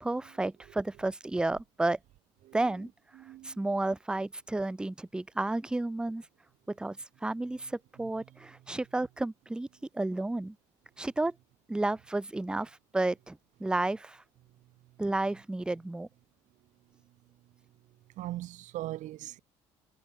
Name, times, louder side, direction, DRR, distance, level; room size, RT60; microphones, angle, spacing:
voice 1, 0.0-2.0 2.5-2.9 3.4-6.2 6.7-7.0 7.2-9.7 9.9-10.6 11.0-11.3 11.7-14.2 15.0-16.1, right 2 dB, 5° right, 0.4 m, -32 dB
voice 2, 2.4-2.9 3.1-3.7 8.0-8.8 18.2-19.4, right 15 dB, 60° right, 0.6 m, -41 dB
hypercardioid pair, 55°, 15 cm